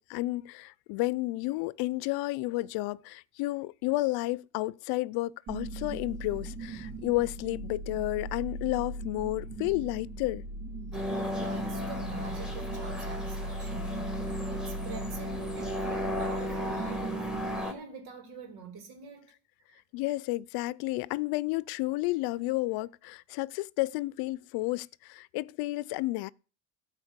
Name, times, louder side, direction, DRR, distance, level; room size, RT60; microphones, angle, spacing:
voice 1, 0.0-10.4 19.9-26.3, left 19 dB, 80° left, 0.6 m, -31 dB
sound 1, 5.5-17.6, right 2 dB, 65° right, 2.9 m, -39 dB
sound 2, 10.9-17.7, left 1 dB, ahead, 1.8 m, -35 dB
voice 2, 10.9-19.3 19.7-19.8, right 5 dB, 85° right, 3.2 m, -46 dB
13.0 x 4.4 x 8.1 m
cardioid pair, 155°, 37 cm